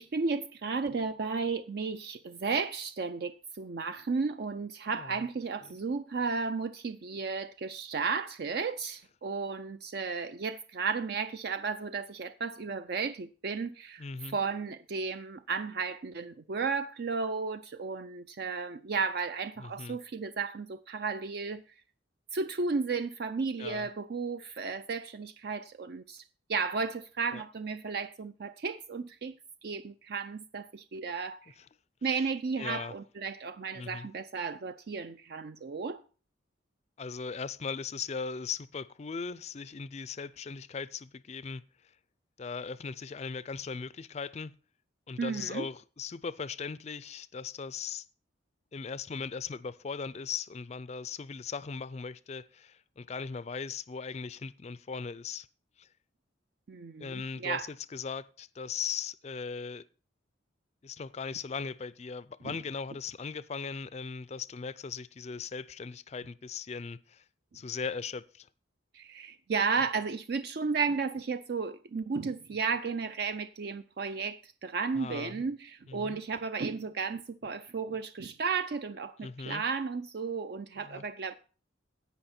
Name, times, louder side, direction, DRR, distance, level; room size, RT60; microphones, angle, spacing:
voice 1, 0.0-21.6 22.3-26.2 26.5-29.4 29.6-31.5 32.0-36.0 45.2-45.7 56.7-57.7 62.4-62.5 68.9-81.3, right 5 dB, 55° right, 0.4 m, -34 dB
voice 2, 14.0-14.4 19.6-20.0 23.6-23.9 27.3-27.4 32.6-32.9 33.7-34.1 37.0-41.6 42.4-44.5 45.1-48.1 48.7-55.5 55.8-55.9 57.0-59.8 60.8-67.2 67.5-68.5 74.9-75.4 75.9-76.2 79.2-79.6 80.8-81.0, left 5 dB, 35° left, 0.4 m, -38 dB
16.5 x 5.6 x 4.3 m
head